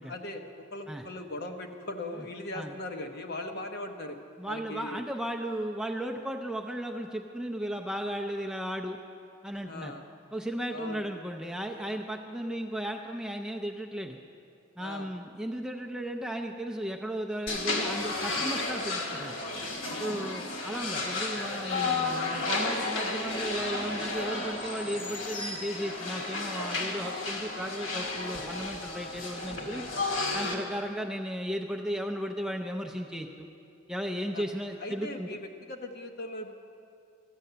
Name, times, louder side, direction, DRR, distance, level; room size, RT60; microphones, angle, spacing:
voice 1, 0.0-4.2 4.5-5.0 9.7-10.0 10.7-11.0 14.8-15.1 20.0-20.3 34.3-34.4 34.8-36.5, left 2 dB, 50° left, 4 dB, 0.8 m, -39 dB
voice 2, 4.4-9.0 9.4-10.0 10.3-14.2 14.8-19.3 20.0-29.8 30.3-33.5 33.9-35.4, equal, 5° right, 2 dB, 0.4 m, -35 dB
sound 1, 17.5-30.5, left 3 dB, 80° left, 1.5 m, -33 dB
13.0 x 8.3 x 6.7 m, 2.5 s
head